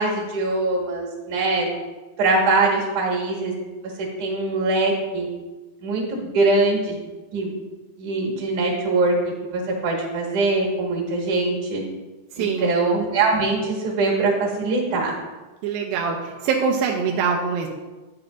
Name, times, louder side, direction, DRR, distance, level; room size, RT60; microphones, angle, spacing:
voice 1, 0.0-1.7 2.2-3.5 4.0-5.3 5.8-7.0 7.3-7.5 8.0-11.8 12.4-15.1, right 3 dB, 55° right, -2 dB, 2.8 m, -22 dB
voice 2, 12.3-12.8 15.6-17.7, right 5 dB, 85° right, 1 dB, 2.2 m, -24 dB
9.1 x 8.6 x 2.6 m, 1.2 s
omnidirectional pair, 4.6 m